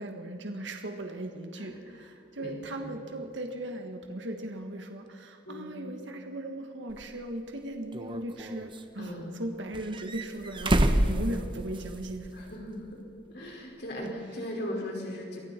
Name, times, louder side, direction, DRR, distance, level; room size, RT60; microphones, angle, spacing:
voice 1, 0.0-12.3, right 1 dB, 65° right, 4 dB, 1.6 m, -38 dB
voice 2, 1.6-2.1 2.4-2.9 5.5-5.7 9.0-9.3 12.3-13.0 13.3-15.4, left 1 dB, 55° left, -1 dB, 5.3 m, -38 dB
sound 1, 6.9-7.0 7.9-8.8 9.7-12.1 12.4-12.5 14.1-14.2, right 1 dB, 25° right, 1.0 m, -28 dB
29.0 x 22.0 x 4.5 m, 2.8 s
head